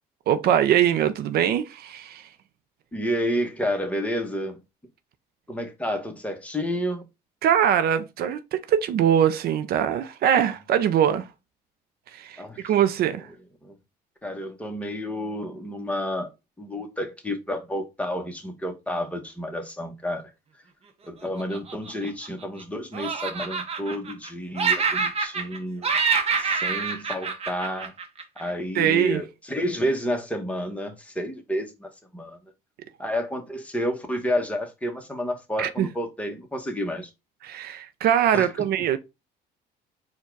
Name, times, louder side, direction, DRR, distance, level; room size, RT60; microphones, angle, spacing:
voice 1, 0.3-2.3 7.4-11.3 12.1-13.3 28.7-29.2 35.6-35.9 37.4-39.0, right 9 dB, 65° right, 0.5 m, -22 dB
voice 2, 2.9-4.6 5.5-7.0 12.4-12.7 13.6-13.7 14.2-16.3 16.6-20.2 21.1-25.9 26.4-27.9 28.4-32.4 33.0-37.1 38.3-38.5, equal, 10° left, 1.0 m, -30 dB
Laughter, 21.4-22.6 22.9-24.3 24.6-25.6 25.8-28.4, right 5 dB, 35° right, 0.8 m, -26 dB
4.5 x 2.3 x 4.5 m
cardioid pair, 110°, 17 cm